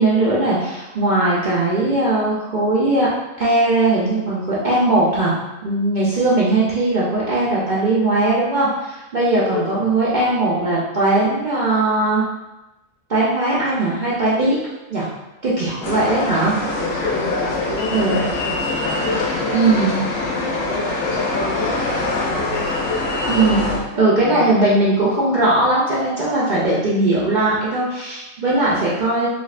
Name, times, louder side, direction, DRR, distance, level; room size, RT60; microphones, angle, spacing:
voice 1, 0.0-3.1 3.4-5.3 5.6-12.2 13.1-14.6 14.9-15.1 15.4-16.6 17.9-18.2 19.5-20.0 23.3-29.3, right 2 dB, 50° right, -8 dB, 0.6 m, -19 dB
voice 2, 9.5-9.9 16.8-23.2 24.2-25.2 26.7-26.8, left 3 dB, 85° left, -3 dB, 1.2 m, -28 dB
sound 1, 15.8-23.8, left 2 dB, 65° left, 1.0 m, -24 dB
3.4 x 3.1 x 2.4 m, 1.0 s
omnidirectional pair, 1.4 m